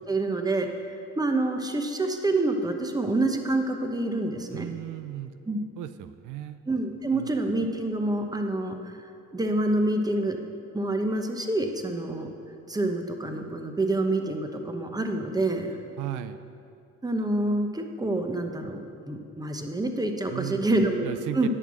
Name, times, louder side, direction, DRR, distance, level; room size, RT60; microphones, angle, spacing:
voice 1, 0.1-4.7 5.5-5.6 6.7-9.0 9.3-10.4 10.7-12.3 12.7-15.8 17.0-21.1 21.3-21.5, right 2 dB, 15° right, 5 dB, 1.0 m, -27 dB
voice 2, 4.5-5.3 5.8-6.6 7.1-7.3 16.0-16.4 20.3-21.5, right 13 dB, 80° right, 12 dB, 0.5 m, -36 dB
11.0 x 6.0 x 6.3 m, 2.6 s
cardioid pair, 90°, 30 cm